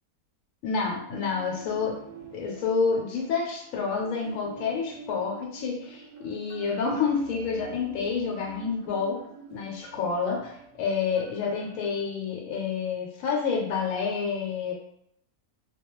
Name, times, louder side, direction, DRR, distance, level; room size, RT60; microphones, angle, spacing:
voice 1, 0.6-2.0 2.3-9.2 9.5-14.7, left 5 dB, 75° left, -1 dB, 1.0 m, -29 dB
sound 1, 1.2-12.0, right 5 dB, 70° right, 0.9 m, -47 dB
2.2 x 2.2 x 2.9 m, 0.71 s
omnidirectional pair, 1.5 m